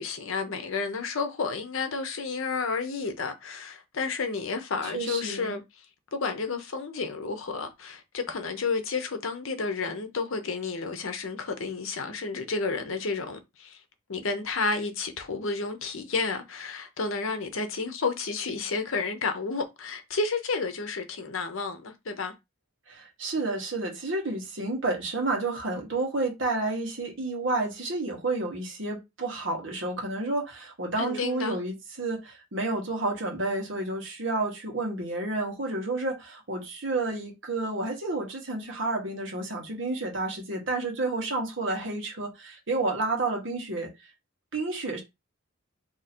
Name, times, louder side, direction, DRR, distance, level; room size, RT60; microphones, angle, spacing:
voice 1, 0.0-5.6 6.1-13.8 14.1-22.3 31.0-31.6, left 4 dB, 70° left, 0.7 m, -31 dB
voice 2, 4.8-5.6 22.9-43.9 44.5-45.0, right 2 dB, 60° right, 1.2 m, -30 dB
2.8 x 2.6 x 4.3 m
head